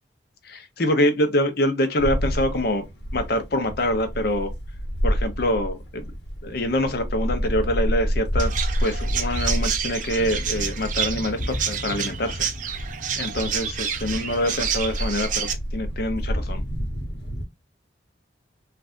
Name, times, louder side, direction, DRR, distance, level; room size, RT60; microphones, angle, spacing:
voice 1, 0.4-2.9 3.1-4.5 5.0-6.1 6.4-8.5 8.8-12.8 13.2-16.6, left 1 dB, 55° left, 0.7 m, -25 dB
sound 1, 2.0-17.5, equal, 75° left, 1.2 m, -29 dB
Chirp tweet, 8.4-15.5, right 8 dB, 45° right, 0.5 m, -29 dB
3.2 x 2.5 x 2.5 m
head